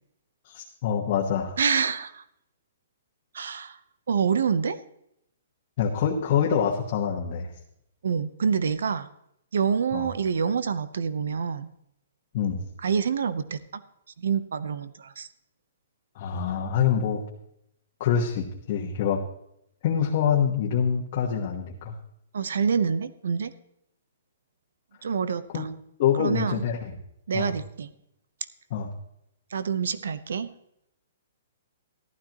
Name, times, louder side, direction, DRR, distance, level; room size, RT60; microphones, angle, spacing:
voice 1, 0.4-1.6 5.8-7.5 9.9-10.1 12.3-12.6 16.1-17.2 18.0-19.2 19.8-21.9 25.5-25.7 26.0-26.9 27.3-27.5 28.7-28.9, left 8 dB, 35° left, -2 dB, 1.3 m, -25 dB
voice 2, 1.6-2.2 3.3-3.8 4.1-4.8 8.0-9.1 9.5-11.7 12.8-13.8 14.2-15.3 22.3-23.5 25.0-25.7 26.2-26.6 27.3-27.9 29.5-30.5, right 6 dB, 80° right, 14 dB, 0.8 m, -27 dB
14.5 x 12.0 x 3.0 m, 0.76 s
hypercardioid pair, 170°, 0 cm